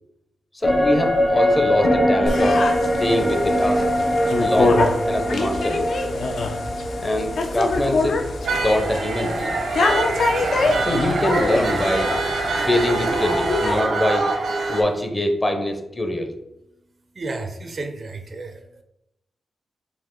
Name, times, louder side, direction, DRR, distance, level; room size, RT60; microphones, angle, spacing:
sound 1, 0.6-10.1 10.5-10.6, equal, 45° left, 1.0 m, -23 dB
voice 1, 0.6-2.6 3.0-3.8 4.4-4.8 5.1-5.9 7.0-8.2 8.6-9.5 10.8-12.2 12.7-14.3 14.7-16.3, left 1 dB, 15° left, 4 dB, 0.6 m, -23 dB
sound 2, 2.3-13.8, left 3 dB, 65° left, 0.5 m, -25 dB
sound 3, 8.4-14.8, right 3 dB, 85° right, 0.8 m, -24 dB
voice 2, 17.1-18.8, right 3 dB, 40° right, 5 dB, 0.4 m, -32 dB
4.7 x 2.7 x 3.7 m, 0.86 s
wide cardioid pair, 170°, 0 cm